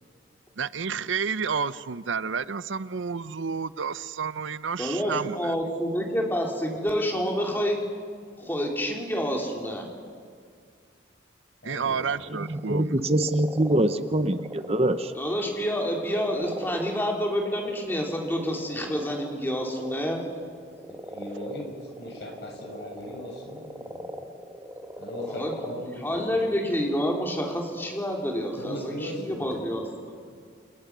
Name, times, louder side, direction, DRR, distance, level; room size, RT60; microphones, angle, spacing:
voice 1, 0.6-5.5 11.6-13.2, right 6 dB, 80° right, 16 dB, 0.7 m, -30 dB
voice 2, 4.8-7.8 8.4-9.9 15.2-20.3 25.3-30.2, equal, 10° left, 0 dB, 3.5 m, -28 dB
voice 3, 11.6-12.1 20.9-21.7 22.0-24.1 25.0-26.2 28.6-29.7, equal, 60° left, 1 dB, 6.9 m, -38 dB
sound 1, 12.1-12.8 13.1-26.1, equal, 10° right, 1.6 m, -41 dB
voice 4, 12.5-15.1, right 1 dB, 30° right, 9 dB, 0.9 m, -24 dB
29.0 x 29.0 x 6.2 m, 2.2 s
head